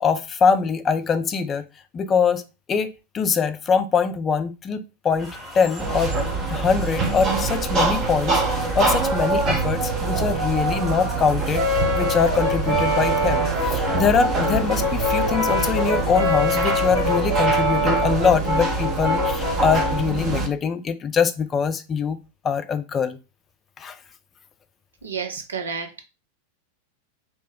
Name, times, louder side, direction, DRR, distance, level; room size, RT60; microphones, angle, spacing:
voice 1, 0.0-1.7 1.9-2.4 2.7-6.1 6.5-22.2 22.4-23.2 23.8-24.0, left 6 dB, 25° left, 0.3 m, -23 dB
sound 1, 5.2-16.5, equal, ahead, 0.9 m, -40 dB
sound 2, 5.8-20.5, right 3 dB, 30° right, 0.7 m, -25 dB
Brass instrument, 11.5-20.1, left 1 dB, 55° right, 1.6 m, -24 dB
voice 2, 25.0-26.1, right 6 dB, 70° right, 0.5 m, -31 dB
2.7 x 2.1 x 3.5 m
figure-of-eight pair, 90°, 0 cm